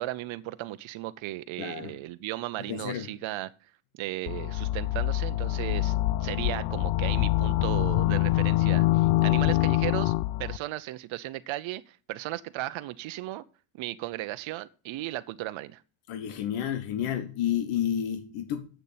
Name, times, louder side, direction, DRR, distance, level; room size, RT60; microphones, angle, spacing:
voice 1, 0.0-10.1 10.4-13.4 13.8-15.8, right 16 dB, 70° right, 0.8 m, -36 dB
voice 2, 1.6-2.0 2.7-3.1 16.1-18.7, left 10 dB, 90° left, 1.4 m, -30 dB
sound 1, 4.3-10.6, left 16 dB, 70° left, 0.6 m, -25 dB
8.1 x 6.8 x 7.4 m
cardioid pair, 105°, 50 cm